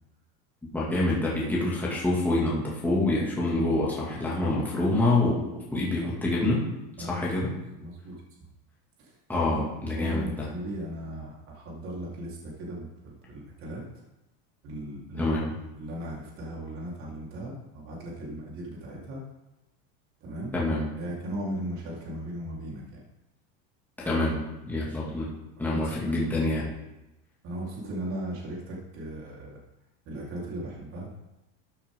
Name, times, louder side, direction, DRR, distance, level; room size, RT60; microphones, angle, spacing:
voice 1, 0.7-5.4 5.7-6.6 7.0-7.5 9.3-10.5 15.2-15.5 20.5-20.9 24.0-24.4 24.7-25.3 25.6-26.7, left 2 dB, 5° left, -6 dB, 2.4 m, -26 dB
voice 2, 7.0-7.5 7.8-8.1 9.0-9.2 9.5-9.7 9.9-13.8 14.6-15.4 15.8-19.2 20.2-20.5 21.0-23.0 25.6-26.2 27.4-29.6 30.1-31.1, right 1 dB, 45° right, -4 dB, 4.1 m, -37 dB
14.0 x 9.0 x 3.8 m, 0.97 s
supercardioid pair, 145°, 29 cm